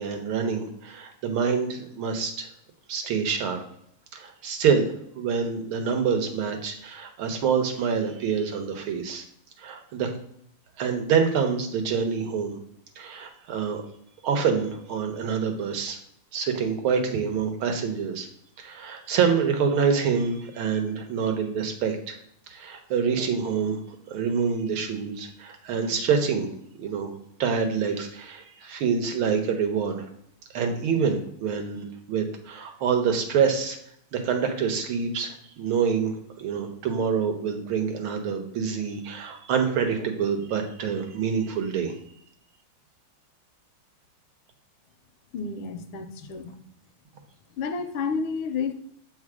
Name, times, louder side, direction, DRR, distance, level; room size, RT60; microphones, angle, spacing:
voice 1, 0.0-2.5 2.9-3.6 4.1-9.2 9.6-10.1 10.8-12.6 13.0-13.8 14.2-16.0 16.3-18.3 18.6-22.2 22.5-23.8 24.1-26.5 26.8-27.1 27.4-30.1 30.5-33.8 34.1-41.9, right 6 dB, 80° right, 4 dB, 1.8 m, -26 dB
voice 2, 45.3-46.5 47.6-48.7, left 5 dB, 80° left, 8 dB, 1.5 m, -30 dB
7.6 x 4.1 x 4.8 m, 0.72 s
omnidirectional pair, 2.3 m